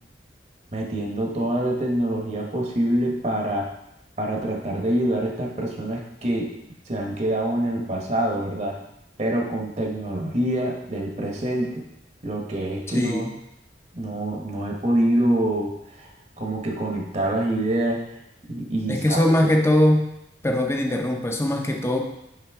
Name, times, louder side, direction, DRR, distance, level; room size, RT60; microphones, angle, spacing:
voice 1, 0.7-3.7 4.2-6.5 6.9-8.8 9.2-11.8 12.2-13.2 13.9-15.7 16.0-16.1 16.4-18.0 18.5-19.2, right 1 dB, 40° right, -1 dB, 1.1 m, -25 dB
voice 2, 12.9-13.3 18.9-20.1 20.4-22.0, left 1 dB, 15° left, 2 dB, 0.6 m, -21 dB
5.9 x 5.4 x 3.5 m, 0.83 s
head